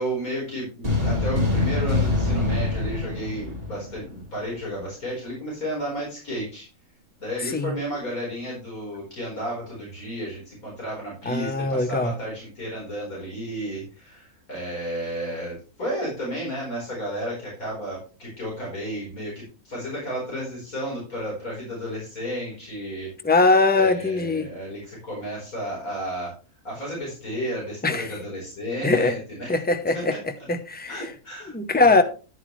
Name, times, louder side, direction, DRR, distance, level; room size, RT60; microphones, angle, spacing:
voice 1, 0.0-6.7 7.2-23.1 23.7-26.3 26.6-29.6 29.9-30.5 30.9-32.0, equal, 70° left, 5.1 m, -32 dB
sound 1, 0.8-4.3, left 2 dB, 40° right, 3.4 m, -24 dB
voice 2, 11.3-12.1 23.2-24.5 27.8-28.1 28.8-29.1 29.5-30.1 30.5-30.9 31.5-32.0, left 3 dB, 10° left, 0.6 m, -21 dB
10.5 x 10.0 x 3.2 m
omnidirectional pair, 1.6 m